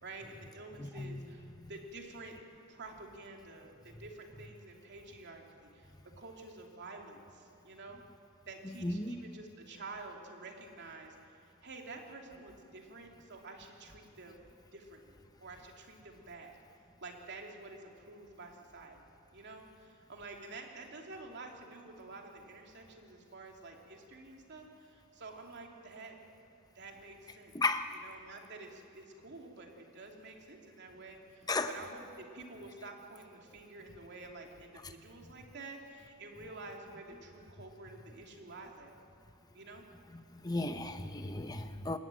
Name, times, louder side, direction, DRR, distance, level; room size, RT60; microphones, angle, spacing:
voice 1, 0.0-2.3 2.7-5.9 6.2-8.0 8.5-14.4 14.7-16.6 17.0-19.0 19.3-26.2 26.7-27.5 28.0-38.9 39.5-39.8, right 3 dB, 55° right, 1 dB, 2.9 m, -49 dB
voice 2, 0.8-1.3 1.6-1.7 8.6-9.2 27.3-27.9 31.5-31.8 34.8-34.9 40.1-42.0, left 2 dB, 20° left, 8 dB, 0.8 m, -35 dB
27.5 x 14.0 x 9.2 m, 2.7 s
head